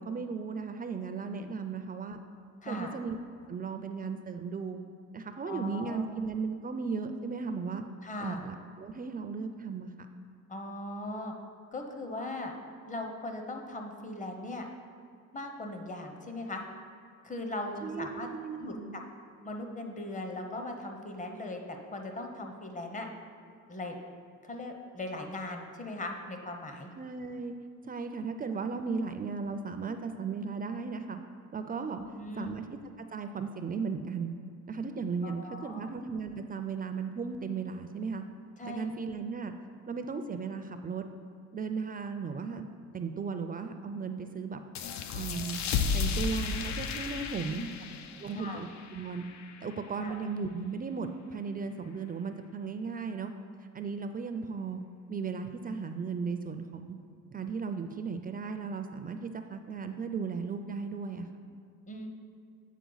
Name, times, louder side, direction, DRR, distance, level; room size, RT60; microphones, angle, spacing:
voice 1, 0.0-2.2 2.7-3.2 3.5-4.8 5.1-7.8 8.2-9.9 17.8-19.0 26.9-27.5 27.8-31.2 31.5-32.0 32.3-34.3 34.7-38.2 38.7-39.5 39.9-41.0 41.5-42.7 42.9-44.6 44.9-45.6 45.9-47.7 48.2-49.3 49.6-53.3 53.7-54.8 55.1-57.0 57.3-61.3, right 5 dB, 30° right, 7 dB, 0.4 m, -36 dB
voice 2, 2.6-3.0 5.4-6.1 8.0-8.4 10.5-11.3 11.7-12.5 12.9-14.6 15.3-16.6 17.2-18.3 18.6-18.7 19.4-23.1 23.7-24.0 24.4-26.9 32.0-32.5 35.2-35.9 38.6-38.9 47.4-47.7 48.3-48.6 50.0-50.2 61.9-62.1, left 1 dB, 25° left, 3 dB, 0.8 m, -39 dB
sound 1, 44.7-50.0, left 6 dB, 70° left, 0.5 m, -34 dB
8.2 x 4.5 x 3.9 m, 2.3 s
cardioid pair, 90°, 30 cm